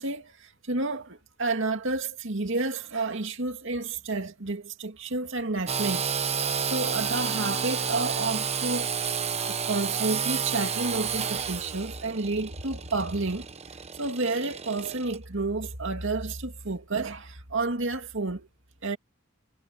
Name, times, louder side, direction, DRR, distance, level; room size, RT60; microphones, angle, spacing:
voice 1, 0.0-6.1 6.7-8.9 9.5-13.5 13.9-18.5 18.8-19.0, right 3 dB, 65° right, 2.4 m, -30 dB
Engine / Sawing, 5.7-15.2, right 7 dB, 30° right, 1.0 m, -31 dB
head